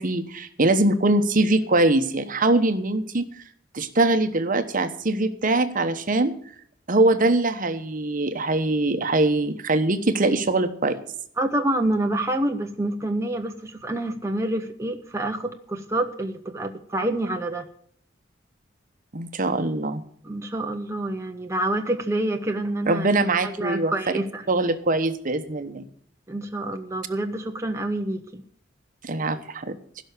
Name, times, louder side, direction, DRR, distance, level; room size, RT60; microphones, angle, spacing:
voice 1, 0.0-3.3 3.7-6.3 6.9-11.0 19.1-20.0 22.9-23.9 24.5-25.8 29.0-29.7, right 2 dB, 45° right, 9 dB, 1.0 m, -22 dB
voice 2, 11.4-17.6 20.2-24.4 26.3-28.4, right 1 dB, 15° right, 3 dB, 0.8 m, -27 dB
16.0 x 6.3 x 8.1 m, 0.62 s
head